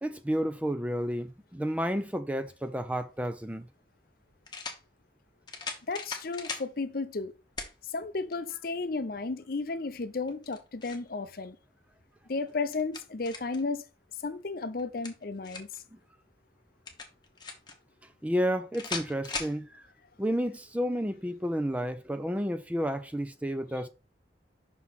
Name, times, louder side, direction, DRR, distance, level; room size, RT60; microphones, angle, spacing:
voice 1, 0.0-3.7 15.9-16.0 18.2-19.9 20.2-23.9, equal, 5° right, 0.4 m, -31 dB
sound 1, 3.2-3.3 4.5-4.8 5.5-6.7 7.6-7.7 8.3-8.4 10.3-11.1 12.4-13.6 14.8-15.8 16.9-17.7 18.7-19.6, left 4 dB, 25° left, 1.2 m, -39 dB
voice 2, 5.9-7.3 7.9-11.6 12.3-13.8 14.2-15.7, left 3 dB, 50° left, 0.6 m, -33 dB
6.0 x 3.8 x 5.6 m
head